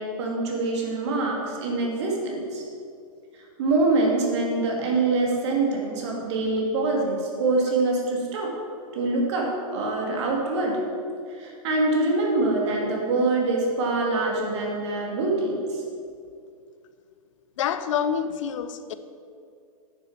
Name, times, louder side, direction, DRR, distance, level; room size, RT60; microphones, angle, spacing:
voice 1, 0.0-2.6 3.6-8.5 8.9-10.8 11.4-15.8, right 2 dB, 50° right, -1 dB, 2.5 m, -25 dB
voice 2, 17.6-18.9, left 8 dB, 60° left, 11 dB, 0.8 m, -27 dB
9.4 x 6.9 x 7.3 m, 2.4 s
hypercardioid pair, 155°, 19 cm